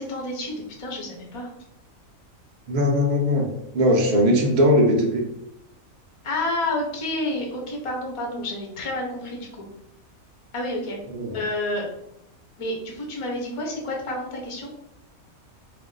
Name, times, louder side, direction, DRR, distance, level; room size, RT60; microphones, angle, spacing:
voice 1, 0.0-1.5 6.2-9.7 10.5-11.0 11.3-11.9 12.6-14.7, left 1 dB, 45° left, -1 dB, 0.4 m, -29 dB
voice 2, 2.7-5.2 11.1-11.4, equal, 65° right, 0 dB, 0.4 m, -20 dB
2.5 x 2.1 x 3.7 m, 0.80 s
omnidirectional pair, 1.5 m